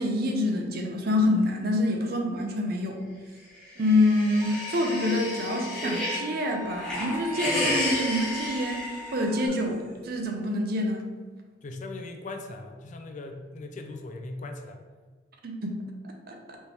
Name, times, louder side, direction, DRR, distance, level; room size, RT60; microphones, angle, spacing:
voice 1, 0.0-3.0 3.8-11.0 15.4-15.8 16.3-16.6, left 1 dB, 55° right, 2 dB, 0.6 m, -26 dB
sound 1, 3.6-6.3 6.7-9.5, left 1 dB, 5° left, 1.3 m, -32 dB
Bowed string instrument, 4.4-9.5, left 3 dB, 15° right, 0.6 m, -40 dB
voice 2, 11.6-14.8, left 2 dB, 45° left, 5 dB, 0.4 m, -39 dB
4.3 x 2.9 x 3.4 m, 1.4 s
head